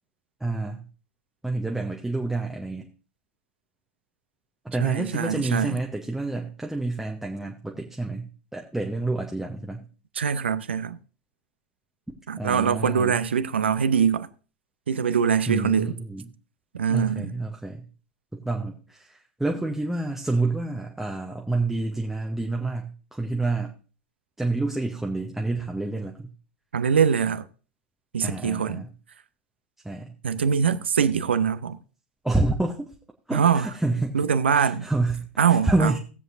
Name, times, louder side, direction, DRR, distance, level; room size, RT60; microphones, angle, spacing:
voice 1, 0.4-0.9 1.4-2.9 4.6-9.9 12.4-13.2 15.5-16.3 16.9-17.9 18.3-23.7 24.4-26.3 28.2-28.9 29.8-30.1 32.2-32.9 33.3-34.3 34.5-36.0, right 2 dB, 5° right, 0.9 m, -28 dB
voice 2, 4.8-5.8 10.2-11.0 12.3-14.3 14.9-15.9 16.7-17.3 26.7-27.4 28.1-28.8 30.2-31.8 33.3-33.7 34.1-34.9 35.4-35.9, right 7 dB, 70° right, 0.6 m, -23 dB
18.0 x 7.7 x 2.6 m
figure-of-eight pair, 85°, 6 cm